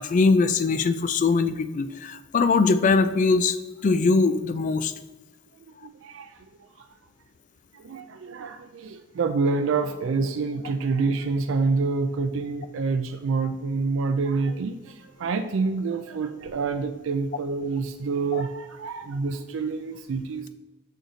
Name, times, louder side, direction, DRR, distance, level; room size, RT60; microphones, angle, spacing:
voice 1, 0.0-3.6 3.8-4.9 18.3-18.4, left 4 dB, 40° left, 11 dB, 0.3 m, -21 dB
voice 2, 5.8-6.9 7.7-20.5, right 4 dB, 65° right, 7 dB, 0.4 m, -27 dB
6.3 x 4.0 x 4.0 m, 1.1 s
head